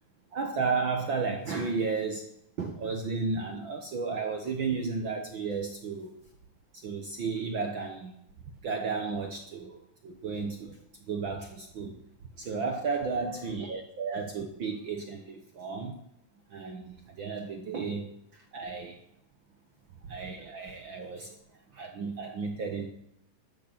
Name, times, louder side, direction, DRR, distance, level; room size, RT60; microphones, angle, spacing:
voice 1, 0.3-2.3 2.6-6.1 6.8-8.1 8.6-10.8 11.1-12.0 12.4-16.0 16.5-18.1 18.5-19.0 20.1-21.4 21.7-22.9, right 4 dB, 75° right, 4 dB, 1.1 m, -33 dB
13.5 x 6.6 x 8.7 m, 0.75 s
omnidirectional pair, 4.0 m